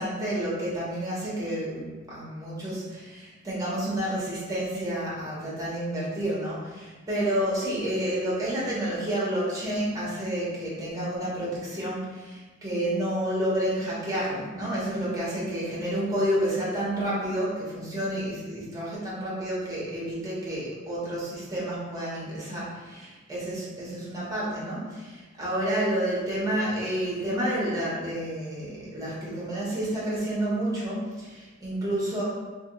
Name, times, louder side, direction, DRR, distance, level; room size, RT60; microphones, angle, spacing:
voice 1, 0.0-32.2, right 1 dB, 20° right, -7 dB, 1.2 m, -30 dB
2.7 x 2.6 x 3.9 m, 1.3 s
head